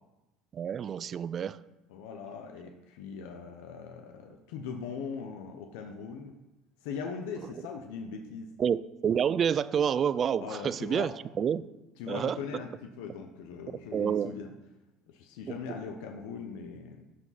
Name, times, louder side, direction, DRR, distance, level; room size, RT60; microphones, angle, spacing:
voice 1, 0.5-1.6 8.6-11.6 12.1-12.4 13.9-14.3, right 8 dB, 35° right, 0.3 m, -28 dB
voice 2, 1.9-6.3 6.8-8.5 10.4-11.1 12.0-12.7 13.0-14.5 15.1-17.0, left 6 dB, 80° left, 0.7 m, -40 dB
12.5 x 5.0 x 4.1 m
supercardioid pair, 120°, 0 cm